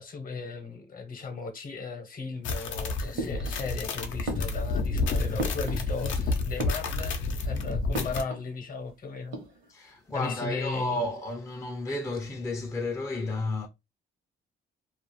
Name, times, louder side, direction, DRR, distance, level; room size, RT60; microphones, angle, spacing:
voice 1, 0.0-9.4 10.1-11.0, left 4 dB, 45° left, 0.8 m, -36 dB
sound 1, 2.4-8.2, left 3 dB, 75° left, 0.6 m, -30 dB
voice 2, 3.0-3.4 7.7-8.0 9.7-13.7, left 2 dB, 15° left, 0.4 m, -33 dB
sound 2, 3.2-3.9 4.2-6.2 6.5-7.3 7.9-8.5 8.8-8.9 9.2-9.9, right 2 dB, 70° right, 0.9 m, -38 dB
2.3 x 2.0 x 3.0 m
cardioid pair, 90°, 20 cm